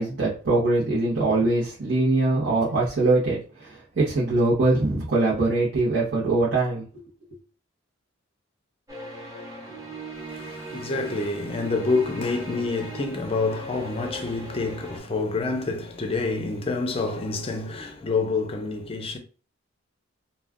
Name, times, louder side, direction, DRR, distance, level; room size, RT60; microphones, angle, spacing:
voice 1, 0.0-7.0, right 2 dB, 70° right, 0.8 m, -22 dB
sound 1, 8.9-15.0, right 2 dB, 15° right, 1.0 m, -39 dB
voice 2, 10.3-19.2, left 3 dB, 30° left, 0.5 m, -27 dB
2.3 x 2.2 x 3.5 m
head